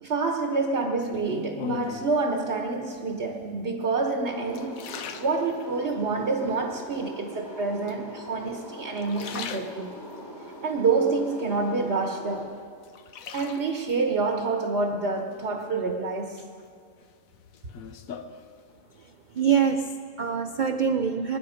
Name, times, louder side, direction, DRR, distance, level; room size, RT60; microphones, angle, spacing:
voice 1, 0.0-4.8 5.2-10.0 10.6-12.5 13.3-16.4, right 3 dB, 50° right, 1.4 m, -27 dB
Waves - Bathtub (Soft Waves), 1.1-2.2 3.0-3.5 4.0-6.0 6.5-7.1 7.9-8.6 8.9-10.2 10.7-11.9 12.3-14.0 15.3-15.9 16.4-19.0 19.2-19.7, left 6 dB, 70° left, 1.2 m, -40 dB
sound 1, 4.3-12.4, equal, 20° left, 1.5 m, -42 dB
voice 2, 19.0-21.4, right 7 dB, 75° right, 0.4 m, -25 dB
26.0 x 9.9 x 5.1 m
omnidirectional pair, 1.5 m